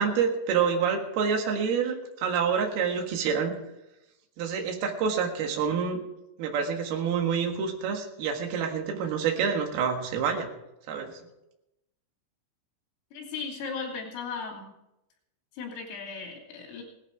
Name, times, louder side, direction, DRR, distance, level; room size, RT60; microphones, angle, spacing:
voice 1, 0.0-3.5 4.4-6.0 6.4-10.5 10.9-11.1, right 6 dB, 60° right, 3 dB, 3.2 m, -27 dB
voice 2, 13.1-14.7 15.6-16.8, left 5 dB, 85° left, 1 dB, 5.5 m, -36 dB
18.0 x 11.5 x 4.7 m, 0.90 s
omnidirectional pair, 5.7 m